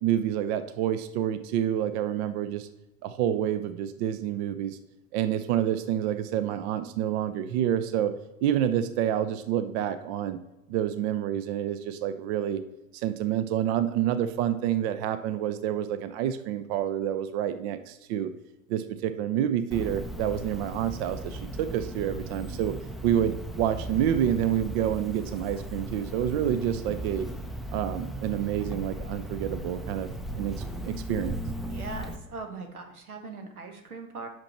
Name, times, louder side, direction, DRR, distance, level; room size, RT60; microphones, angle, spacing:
voice 1, 0.0-2.7 3.0-4.8 5.1-8.1 8.4-10.4 10.7-12.6 12.9-18.3 18.7-22.7 23.0-27.3 27.7-30.6 30.8-31.4, right 10 dB, 50° right, 11 dB, 0.6 m, -28 dB
Cricket, 19.7-32.2, right 1 dB, ahead, 0.4 m, -37 dB
voice 2, 31.7-34.3, right 4 dB, 85° right, 5 dB, 1.2 m, -40 dB
6.0 x 5.1 x 4.2 m, 0.97 s
hypercardioid pair, 85°, 43 cm